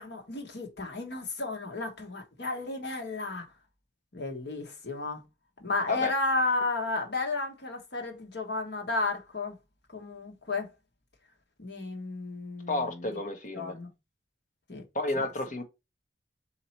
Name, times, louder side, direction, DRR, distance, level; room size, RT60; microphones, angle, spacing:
voice 1, 0.0-3.4 4.1-5.2 5.6-9.6 9.9-10.7 11.6-13.1 13.5-13.9 14.7-14.8 15.1-15.2, left 3 dB, 60° left, 1.2 m, -33 dB
voice 2, 12.7-13.8 14.9-15.6, left 2 dB, 40° left, 0.9 m, -31 dB
4.0 x 2.8 x 4.3 m
head